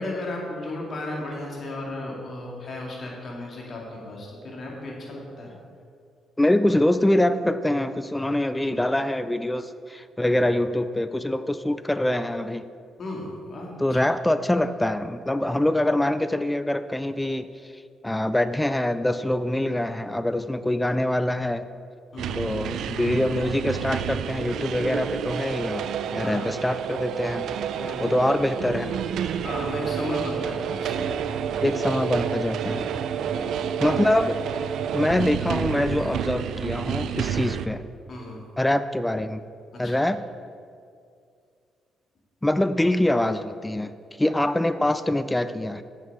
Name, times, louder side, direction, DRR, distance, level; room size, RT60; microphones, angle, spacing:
voice 1, 0.0-5.5 13.0-13.8 22.1-22.5 26.2-26.5 27.8-28.1 29.4-31.1 33.3-33.8 38.1-38.4 39.7-40.0, left 2 dB, 45° left, -2 dB, 2.2 m, -35 dB
voice 2, 6.4-12.7 13.8-17.5 18.0-21.7 22.4-27.5 28.0-28.9 31.6-32.9 33.8-34.4 34.9-37.8 38.6-39.4 39.8-40.2 42.4-45.8, left 1 dB, 10° left, 12 dB, 0.3 m, -24 dB
sound 1, 22.2-37.7, right 8 dB, 75° right, 0.4 m, -29 dB
8.0 x 7.3 x 4.8 m, 2.3 s
cardioid pair, 90°, 0 cm